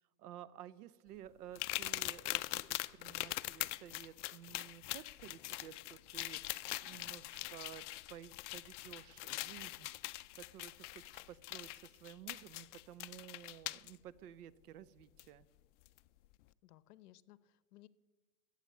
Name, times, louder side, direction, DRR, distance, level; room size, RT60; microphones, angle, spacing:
voice 1, 0.2-7.8 8.1-9.9 10.3-15.5, right 11 dB, 75° right, 18 dB, 0.9 m, -53 dB
sound 1, 1.5-13.9 15.2-15.3 15.8-16.0, left 19 dB, 50° left, 0.5 m, -42 dB
voice 2, 16.6-17.9, left 16 dB, 75° left, 18 dB, 0.8 m, -60 dB
14.5 x 8.2 x 8.2 m, 1.3 s
supercardioid pair, 140°, 46 cm